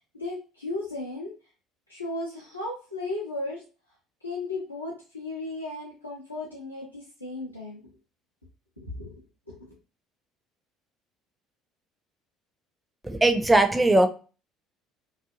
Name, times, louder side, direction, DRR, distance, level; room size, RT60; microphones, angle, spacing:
voice 1, 0.0-1.3 1.9-3.6 4.2-7.8 8.9-9.1 9.6-9.7, left 2 dB, 90° left, -5 dB, 0.4 m, -35 dB
voice 2, 13.0-14.1, right 1 dB, 10° right, 7 dB, 0.4 m, -19 dB
2.5 x 2.4 x 2.6 m, 0.35 s
figure-of-eight pair, 55°, 0 cm